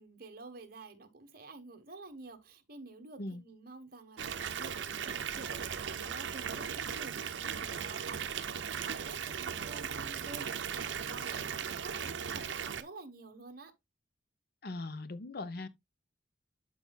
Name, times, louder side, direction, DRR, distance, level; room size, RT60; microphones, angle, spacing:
voice 1, 0.0-13.7, right 3 dB, 50° right, 1.2 m, -50 dB
Water tap faucet / Bathtub (filling or washing) / Fill (with liquid), 4.2-12.8, right 7 dB, 80° right, 0.6 m, -37 dB
voice 2, 14.6-15.7, left 2 dB, 55° left, 0.7 m, -40 dB
11.5 x 4.3 x 2.3 m
head